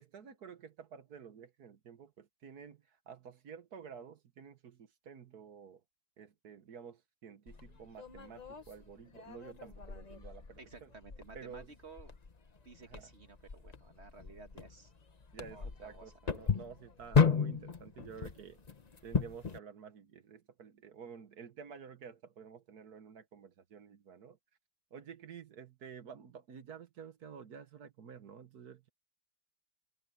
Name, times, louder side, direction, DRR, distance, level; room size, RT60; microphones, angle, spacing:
voice 1, 0.0-5.8 6.2-10.9 11.3-11.7 12.9-13.1 15.3-18.6 19.0-24.4 24.9-28.9, right 7 dB, 55° right, 1.5 m, -51 dB
sound 1, 7.5-19.6, left 6 dB, 30° left, 0.7 m, -35 dB
voice 2, 10.6-12.1 12.6-14.9 15.5-16.1, right 4 dB, 35° right, 1.7 m, -54 dB
omnidirectional pair, 2.1 m